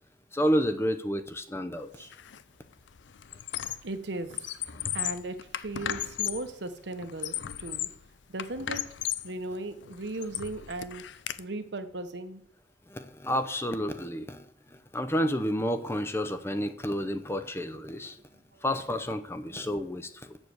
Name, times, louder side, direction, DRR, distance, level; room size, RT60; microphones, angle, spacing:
voice 1, 0.3-2.1 4.7-4.8 12.9-14.5 14.9-18.2 18.6-20.4, equal, 15° left, 10 dB, 0.6 m, -30 dB
Squeak, 2.1-2.4 2.7-4.0 4.3-6.5 7.0-8.0 8.4-9.3 9.8-11.4, left 11 dB, 80° left, 0.5 m, -35 dB
voice 2, 3.8-4.3 4.9-7.9 8.3-8.8 9.2-11.0 11.4-12.4 18.5-18.6, right 2 dB, 70° right, 9 dB, 1.0 m, -37 dB
7.2 x 6.7 x 7.8 m, 0.69 s
head